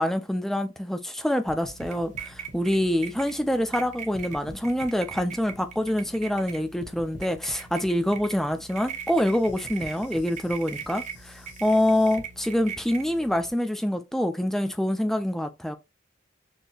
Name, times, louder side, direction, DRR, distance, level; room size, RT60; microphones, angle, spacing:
voice 1, 0.0-15.8, left 1 dB, ahead, 0.3 m, -26 dB
sound 1, 1.5-3.8 4.1-6.5 6.8-12.2, left 1 dB, 80° left, 1.3 m, -47 dB
sound 2, 1.6-13.5, right 7 dB, 40° right, 0.6 m, -41 dB
6.3 x 2.8 x 2.3 m
head